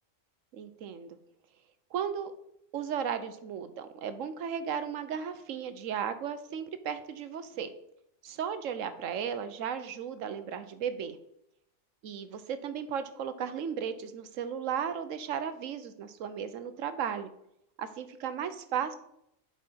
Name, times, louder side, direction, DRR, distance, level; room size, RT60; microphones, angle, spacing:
voice 1, 0.5-1.1 1.9-2.3 2.7-7.7 8.2-11.2 12.0-17.3 17.8-19.0, right 8 dB, 75° right, 11 dB, 1.1 m, -35 dB
8.2 x 4.9 x 4.2 m, 0.77 s
omnidirectional pair, 1.4 m